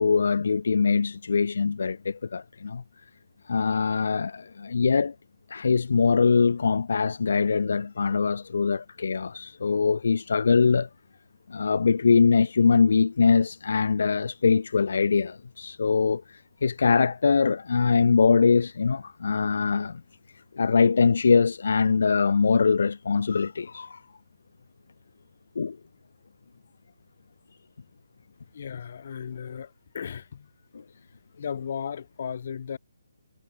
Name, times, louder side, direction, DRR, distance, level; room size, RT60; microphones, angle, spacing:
voice 1, 0.0-2.8 3.5-5.1 5.5-10.9 11.5-20.0 20.5-24.0 25.6-25.8 30.7-30.8, left 5 dB, 55° left, 1.8 m, -22 dB
voice 2, 28.5-30.5 31.4-32.8, left 7 dB, 40° left, 7.0 m, -35 dB
hypercardioid pair, 175°, 0 cm